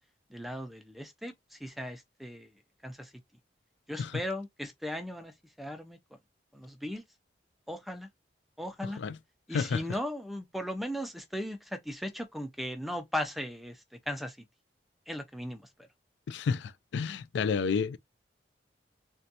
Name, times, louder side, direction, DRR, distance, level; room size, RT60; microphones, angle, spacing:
voice 1, 0.3-2.5 2.8-3.1 3.9-5.3 5.6-6.0 6.5-7.0 7.7-8.1 8.6-9.0 9.5-14.4 15.1-15.6, equal, ahead, 0.4 m, -37 dB
voice 2, 8.8-9.2 9.5-9.8 16.3-18.0, left 5 dB, 80° left, 0.3 m, -31 dB
3.5 x 2.2 x 2.7 m
head